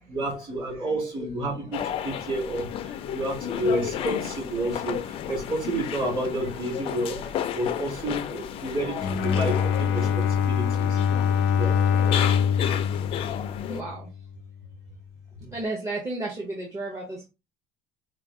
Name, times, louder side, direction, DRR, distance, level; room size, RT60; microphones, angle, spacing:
voice 1, 0.1-11.0 11.5-12.4, right 1 dB, 30° right, -3 dB, 2.2 m, -30 dB
sound 1, 1.7-13.8, left 9 dB, 35° left, 0.4 m, -33 dB
Bowed string instrument, 8.9-14.2, left 7 dB, 90° left, 0.6 m, -24 dB
voice 2, 13.7-14.1 15.4-17.3, right 2 dB, 15° right, -1 dB, 0.6 m, -33 dB
4.6 x 2.2 x 3.5 m, 0.27 s
cardioid pair, 175°, 17 cm